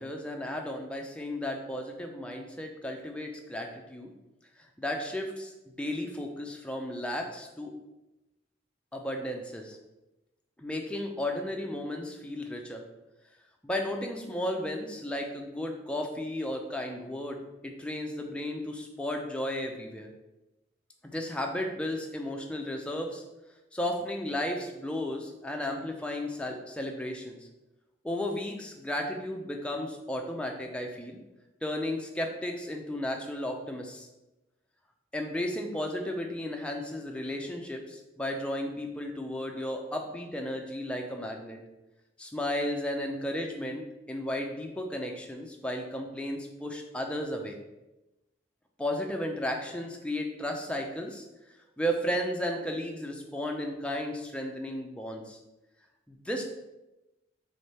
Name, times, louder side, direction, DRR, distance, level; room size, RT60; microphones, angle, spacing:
voice 1, 0.0-4.1 4.6-5.5 5.8-7.7 8.9-9.8 10.6-12.8 13.6-20.1 21.0-23.2 23.7-27.4 28.0-31.2 31.6-34.1 35.1-41.6 42.2-47.6 48.8-51.3 51.8-55.4 56.1-56.4, left 1 dB, 5° left, 1 dB, 0.4 m, -34 dB
3.5 x 3.5 x 4.1 m, 0.99 s
head